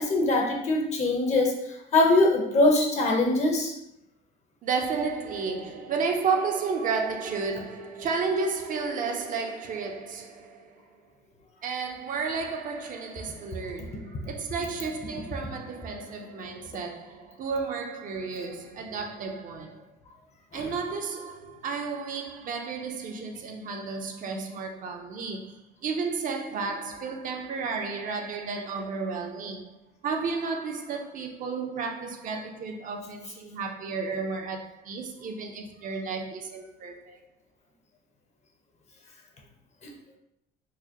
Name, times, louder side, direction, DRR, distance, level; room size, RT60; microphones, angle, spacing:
voice 1, 0.0-3.7 20.5-20.7 39.8-39.9, left 2 dB, 40° left, 0.8 m, -23 dB
voice 2, 4.6-10.8 11.6-19.9 20.5-29.8 30.0-37.2, right 4 dB, 50° right, 0.6 m, -32 dB
4.7 x 2.1 x 2.9 m
cardioid pair, 110°, 17 cm